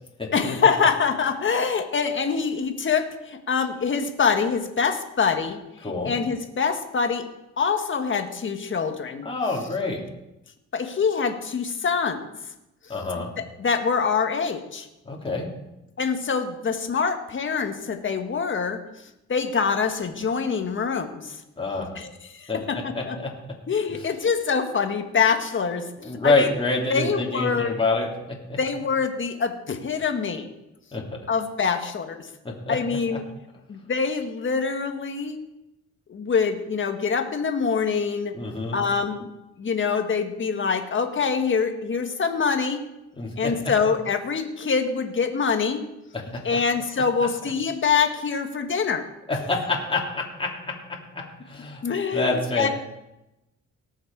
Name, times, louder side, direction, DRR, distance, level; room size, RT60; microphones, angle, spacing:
voice 1, 0.3-5.6 6.0-7.2 7.6-9.3 10.7-12.3 12.9-13.0 13.4-14.9 16.0-18.8 19.3-21.4 21.9-23.2 23.7-26.5 26.9-27.7 28.6-30.5 31.3-32.3 32.7-33.2 33.7-35.4 36.1-38.3 38.7-39.3 39.6-42.8 43.4-45.8 46.4-49.0 51.8-52.7, left 5 dB, 40° left, 6 dB, 1.6 m, -25 dB
voice 2, 5.8-6.1 9.2-10.0 12.9-13.3 15.0-15.5 21.6-21.9 22.5-22.6 22.9-23.3 26.0-28.6 30.9-31.0 32.4-32.8 33.1-33.2 38.3-38.8 43.2-43.5 46.1-46.6 49.3-50.5 51.4-51.8 52.1-52.7, left 3 dB, 20° left, -3 dB, 3.0 m, -26 dB
18.5 x 6.6 x 4.8 m, 0.91 s
cardioid pair, 90°, 30 cm